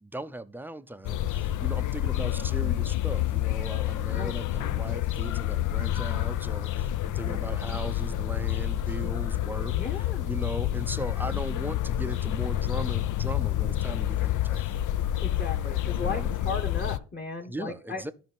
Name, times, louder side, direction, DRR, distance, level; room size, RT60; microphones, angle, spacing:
voice 1, 0.0-9.7 10.3-14.7 15.9-16.3 17.4-18.1, right 1 dB, 5° right, 0.6 m, -38 dB
sound 1, 1.0-17.0, left 13 dB, 55° left, 0.6 m, -28 dB
voice 2, 1.7-2.2 4.1-4.3 7.2-7.5 9.7-10.3 15.2-18.0, left 4 dB, 25° left, 1.6 m, -36 dB
13.5 x 5.1 x 3.6 m
supercardioid pair, 75°, 37 cm